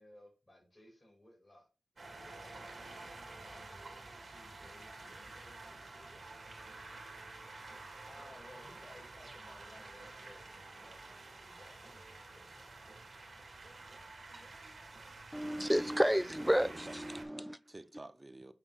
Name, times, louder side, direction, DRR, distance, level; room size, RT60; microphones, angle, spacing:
voice 1, 0.0-1.7 1.9-6.2 6.5-7.0 7.5-12.9, left 1 dB, 30° left, 4.2 m, -60 dB
sound 1, 2.0-17.2, right 3 dB, 65° right, 2.6 m, -50 dB
voice 2, 15.3-17.6, equal, 5° right, 0.3 m, -31 dB
voice 3, 16.5-18.5, right 2 dB, 30° right, 0.8 m, -51 dB
9.0 x 4.4 x 4.1 m
cardioid pair, 55°, 0 cm